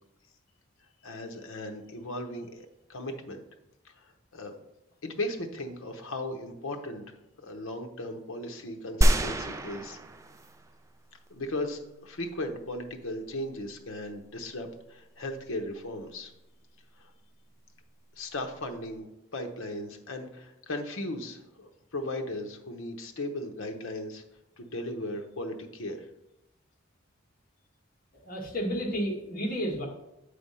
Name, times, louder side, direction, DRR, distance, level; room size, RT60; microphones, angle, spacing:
voice 1, 1.0-3.4 3.8-4.5 5.0-10.0 11.3-16.3 17.0-17.1 18.2-19.1 19.3-24.2 24.6-26.1, left 1 dB, 75° left, 5 dB, 0.8 m, -37 dB
sound 1, 9.0-10.8 11.3-11.4, right 1 dB, 15° right, 0.3 m, -26 dB
voice 2, 28.2-29.9, equal, 45° left, -1 dB, 1.5 m, -31 dB
8.2 x 3.4 x 5.4 m, 0.86 s
head